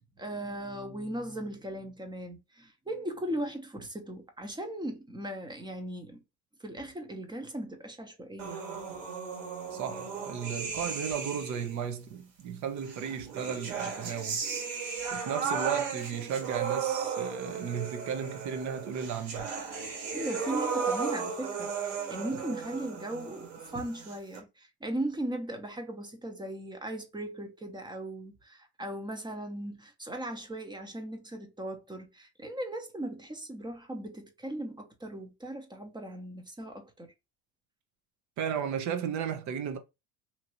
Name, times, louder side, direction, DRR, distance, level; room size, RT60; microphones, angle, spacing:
voice 1, 0.2-6.2 6.6-8.6 19.8-37.1, right 1 dB, 15° right, 0.8 m, -38 dB
sound 1, 8.4-11.8 12.8-24.4, right 6 dB, 85° right, 1.8 m, -35 dB
voice 2, 9.7-14.4 15.1-19.5 38.4-39.8, right 7 dB, 55° right, 0.9 m, -34 dB
2.9 x 2.6 x 2.9 m
supercardioid pair, 100°, 33 cm